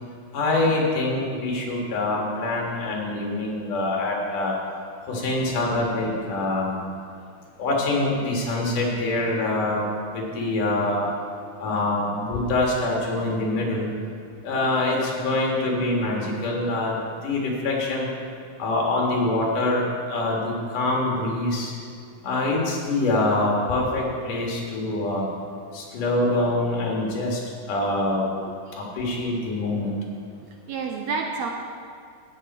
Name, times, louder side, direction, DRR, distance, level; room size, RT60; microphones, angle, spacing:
voice 1, 0.3-4.5 5.1-6.8 7.6-9.8 10.1-11.1 11.6-13.9 14.4-17.0 17.2-18.1 18.6-21.7 22.2-25.2 25.7-27.4 27.7-28.3 28.8-30.0, left 2 dB, 75° left, -1 dB, 3.3 m, -25 dB
voice 2, 30.4-31.5, right 4 dB, 75° right, 2 dB, 1.7 m, -30 dB
13.5 x 8.9 x 4.3 m, 2.3 s
omnidirectional pair, 3.7 m